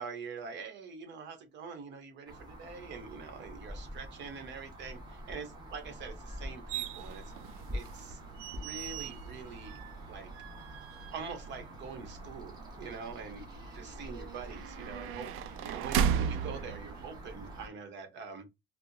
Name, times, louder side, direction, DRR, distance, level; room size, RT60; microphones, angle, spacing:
voice 1, 0.0-8.2 8.6-9.8 10.1-10.3 11.1-18.5, right 5 dB, 60° right, 1.0 m, -44 dB
sound 1, 2.3-17.7, equal, 20° right, 1.3 m, -46 dB
sound 2, 6.7-17.6, right 8 dB, 85° right, 0.4 m, -37 dB
4.3 x 2.1 x 2.6 m
cardioid pair, 165°, 21 cm